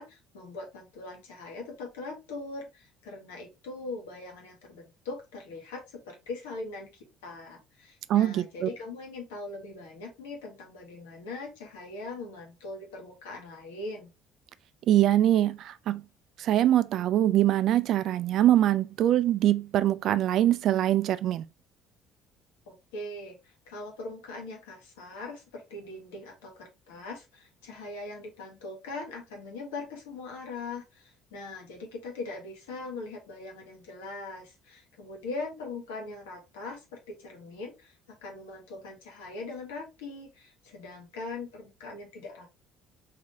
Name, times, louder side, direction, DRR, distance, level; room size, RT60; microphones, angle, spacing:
voice 1, 0.0-14.1 22.7-42.5, left 3 dB, 80° left, 1.3 m, -41 dB
voice 2, 8.1-8.7 14.9-16.0 16.4-21.4, right 12 dB, 60° right, 0.3 m, -23 dB
3.7 x 3.1 x 2.9 m
hypercardioid pair, 55°, 0 cm